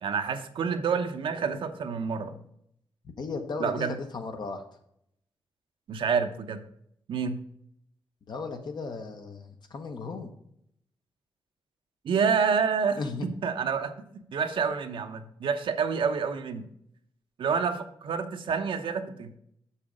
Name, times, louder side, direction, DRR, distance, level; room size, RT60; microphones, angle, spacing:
voice 1, 0.0-2.4 3.6-4.0 5.9-6.6 7.1-7.4 12.0-16.7 17.4-19.4, right 6 dB, 75° right, 6 dB, 0.8 m, -28 dB
voice 2, 3.2-4.6 8.3-10.3 13.0-13.3, left 4 dB, 55° left, 5 dB, 0.9 m, -35 dB
6.9 x 5.7 x 5.0 m, 0.72 s
wide cardioid pair, 155°, 9 cm